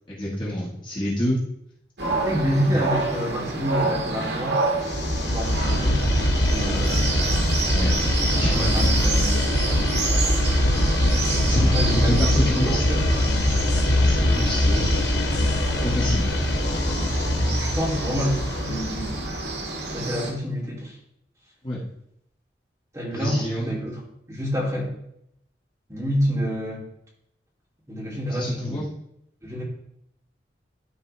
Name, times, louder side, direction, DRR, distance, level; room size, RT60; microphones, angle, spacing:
voice 1, 0.1-1.4 2.5-2.8 7.7-8.8 11.4-12.9 13.8-14.9 15.8-16.2 21.6-21.8 23.1-23.8 28.3-28.9, equal, 25° left, -6 dB, 1.7 m, -28 dB
sound 1, 2.0-20.3, right 3 dB, 65° right, 1.5 m, -29 dB
voice 2, 2.2-4.6 5.3-6.0 6.5-7.1 8.3-9.3 11.5-13.0 17.6-19.2 19.8-20.9 22.9-24.0 24.3-24.9 25.9-26.8 27.9-28.8 29.4-29.6, equal, 15° right, -6 dB, 2.8 m, -28 dB
sound 2, 4.8-19.7, left 1 dB, 75° left, 1.1 m, -22 dB
13.0 x 4.4 x 3.3 m, 0.75 s
head